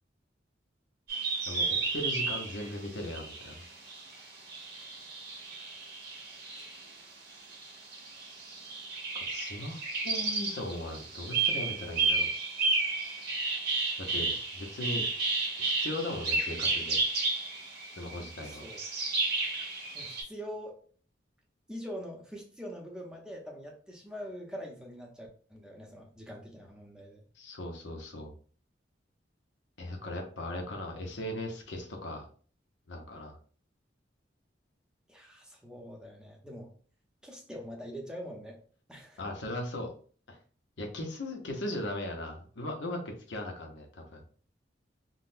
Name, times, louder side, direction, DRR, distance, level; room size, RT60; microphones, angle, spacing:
sound 1, 1.1-6.9 7.3-20.2, right 3 dB, 60° right, 0.9 m, -32 dB
voice 1, 1.5-3.6 6.5-6.7 9.1-12.3 14.0-15.1 15.6-17.0 18.0-18.6 27.4-28.3 29.8-32.3 32.9-33.4 39.2-39.9 40.3-40.4 40.8-44.2, left 1 dB, 80° left, 2 dB, 0.7 m, -38 dB
voice 2, 18.4-18.8 19.9-20.8 21.7-27.2 35.1-36.7 37.2-38.6 38.9-39.2, equal, 5° right, 0 dB, 0.7 m, -44 dB
3.8 x 2.1 x 2.5 m, 0.43 s
head